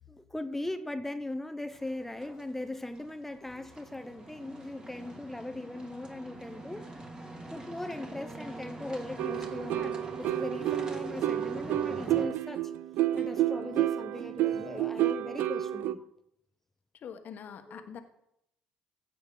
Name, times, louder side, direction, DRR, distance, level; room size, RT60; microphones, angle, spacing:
voice 1, 0.1-6.8 7.5-12.6 13.1-16.0 17.7-17.9, left 1 dB, 10° left, 0.9 m, -39 dB
sound 1, 1.7-12.3, right 2 dB, 20° right, 2.6 m, -45 dB
sound 2, 9.2-15.9, right 12 dB, 65° right, 0.4 m, -30 dB
voice 2, 17.0-18.0, left 7 dB, 55° left, 1.3 m, -44 dB
15.5 x 6.9 x 4.0 m
hypercardioid pair, 55°, 4 cm